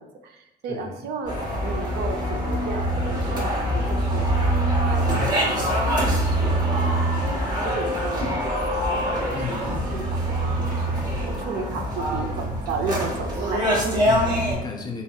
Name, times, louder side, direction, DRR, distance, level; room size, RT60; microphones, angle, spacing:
voice 1, 0.0-1.3 1.6-4.6 4.8-7.1 7.6-10.5 10.8-14.0, right 4 dB, 70° right, 4 dB, 0.4 m, -34 dB
sound 1, 1.3-14.5, right 1 dB, 25° right, 0.8 m, -24 dB
voice 2, 9.3-9.9 12.1-12.6 14.0-15.0, left 5 dB, 25° left, 1 dB, 0.4 m, -35 dB
2.8 x 2.6 x 2.2 m, 0.90 s
cardioid pair, 110°, 17 cm